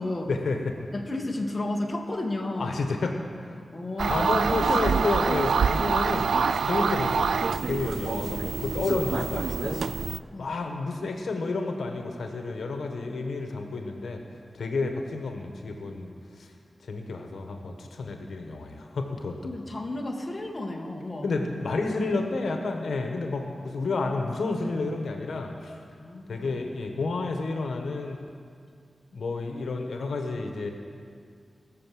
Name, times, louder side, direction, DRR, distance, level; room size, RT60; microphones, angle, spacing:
voice 1, 0.3-0.9 2.6-3.5 4.1-9.9 10.4-14.2 14.5-16.1 16.4-16.5 16.8-19.3 21.2-25.7 26.3-28.2 29.1-30.7, left 3 dB, 80° left, 4 dB, 1.2 m, -30 dB
voice 2, 0.9-2.8 3.7-4.8 10.3-10.5 19.4-21.3 26.0-26.6, left 2 dB, 20° left, 0 dB, 1.4 m, -33 dB
sound 1, 4.0-10.2, right 5 dB, 80° right, 0.3 m, -26 dB
19.0 x 6.8 x 7.6 m, 2.3 s
wide cardioid pair, 160°, 0 cm